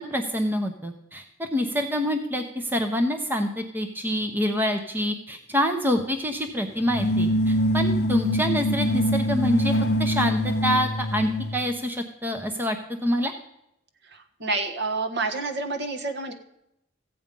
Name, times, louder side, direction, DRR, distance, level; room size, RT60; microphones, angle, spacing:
voice 1, 0.0-9.7 10.0-12.8 13.0-13.3, equal, 10° right, 6 dB, 0.7 m, -26 dB
sound 1, 6.9-11.6, equal, 55° left, 0.8 m, -24 dB
voice 2, 14.0-16.3, right 3 dB, 60° right, 6 dB, 1.4 m, -29 dB
14.5 x 8.5 x 5.3 m, 0.83 s
head